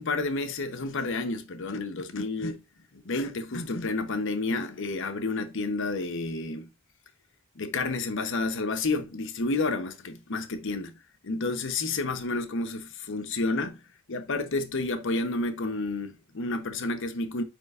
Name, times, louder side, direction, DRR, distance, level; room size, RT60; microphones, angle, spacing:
voice 1, 0.0-2.6 2.9-6.7 7.6-11.0 11.2-13.8 14.1-17.4, left 3 dB, 60° left, 0.8 m, -30 dB
9.3 x 4.6 x 2.5 m
head